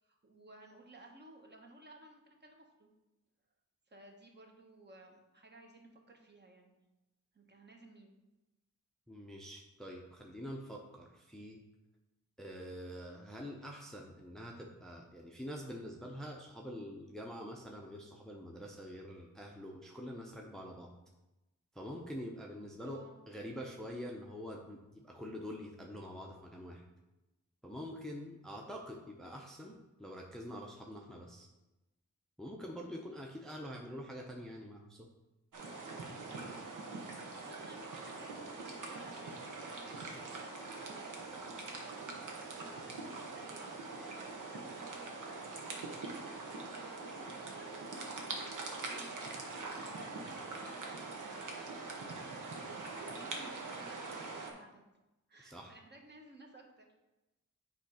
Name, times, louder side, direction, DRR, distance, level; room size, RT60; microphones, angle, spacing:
voice 1, 0.0-2.9 3.9-6.8 7.3-8.1 22.8-23.2 37.4-45.6 46.6-54.8 55.3-56.9, right 2 dB, 35° right, 1 dB, 1.0 m, -57 dB
voice 2, 9.1-11.6 12.4-20.9 21.7-26.8 27.6-31.5 32.4-35.1 55.4-55.7, equal, ahead, 0 dB, 0.6 m, -46 dB
sound 1, 35.5-54.5, right 3 dB, 90° right, 1.1 m, -43 dB
8.2 x 3.1 x 5.0 m, 1.0 s
wide cardioid pair, 130°, 30 cm